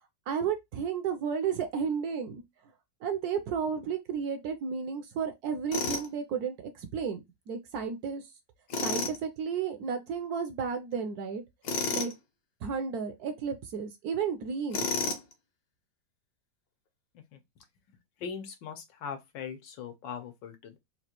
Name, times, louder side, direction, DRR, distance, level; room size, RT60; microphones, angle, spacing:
voice 1, 0.3-2.4 3.0-8.2 8.8-11.4 11.9-12.1 12.6-14.9, right 6 dB, 65° right, 1.0 m, -33 dB
Tools, 5.7-6.1 8.7-9.2 11.6-12.1 14.7-15.3, left 4 dB, 65° left, 1.4 m, -30 dB
voice 2, 18.2-20.8, left 7 dB, 85° left, 1.6 m, -40 dB
4.0 x 2.4 x 2.9 m
omnidirectional pair, 2.0 m